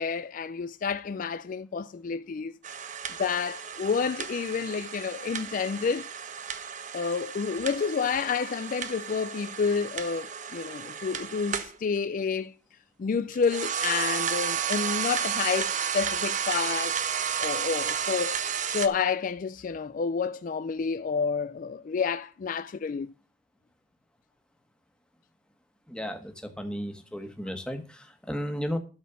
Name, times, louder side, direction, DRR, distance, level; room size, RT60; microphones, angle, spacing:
voice 1, 0.0-2.6 3.2-6.1 6.9-12.5 13.0-17.0 17.4-23.1, left 5 dB, 50° left, 0.4 m, -29 dB
sound 1, 2.6-11.8 13.3-18.9, right 7 dB, 45° right, 0.9 m, -32 dB
voice 2, 25.9-28.8, equal, 5° left, 1.4 m, -34 dB
12.5 x 4.3 x 6.8 m
head